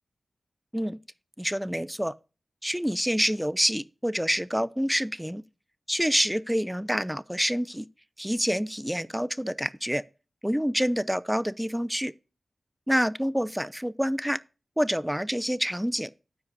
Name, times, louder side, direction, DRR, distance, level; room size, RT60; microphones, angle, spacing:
voice 1, 1.4-2.1 2.6-5.4 5.9-7.9 8.2-10.0 10.4-12.1 12.9-14.4 14.8-16.1, equal, 5° right, 0.4 m, -27 dB
13.5 x 4.7 x 2.6 m
cardioid pair, 45°, 0 cm